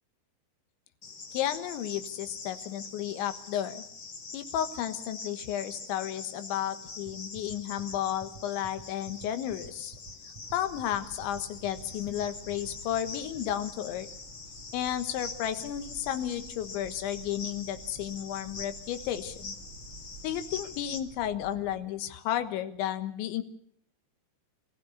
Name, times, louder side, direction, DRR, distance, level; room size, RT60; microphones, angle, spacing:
Cricket, 1.0-21.0, left 4 dB, 40° left, 1.5 m, -44 dB
voice 1, 1.3-3.8 4.3-10.0 10.5-14.1 14.7-19.6 20.2-23.4, left 11 dB, 85° left, 10 dB, 3.7 m, -33 dB
sound 1, 7.0-13.1, right 4 dB, 80° right, 1.3 m, -48 dB
sound 2, 10.4-21.8, right 3 dB, 35° right, 6.0 m, -51 dB
25.5 x 15.5 x 8.2 m, 0.67 s
omnidirectional pair, 5.2 m